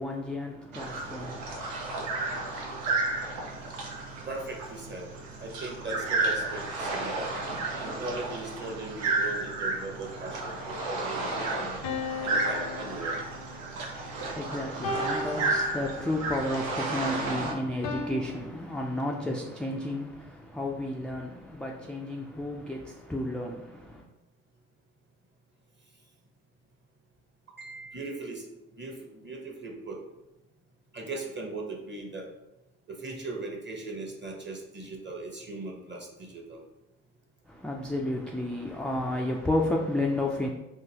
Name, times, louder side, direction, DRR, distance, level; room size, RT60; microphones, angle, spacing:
voice 1, 0.0-1.6 13.9-24.0 37.5-40.5, left 1 dB, 5° left, 0.3 m, -32 dB
sound 1, 0.7-17.5, right 2 dB, 80° right, 0.6 m, -32 dB
voice 2, 4.3-5.1 5.4-7.3 8.0-11.8 12.2-13.2 27.6-28.4 28.8-30.0 30.9-32.2 32.9-36.6, right 2 dB, 30° right, 1.1 m, -39 dB
sound 2, 11.8-13.6 14.8-16.3 17.8-18.1, left 2 dB, 65° left, 0.6 m, -35 dB
3.7 x 2.7 x 2.8 m
hypercardioid pair, 45°, 36 cm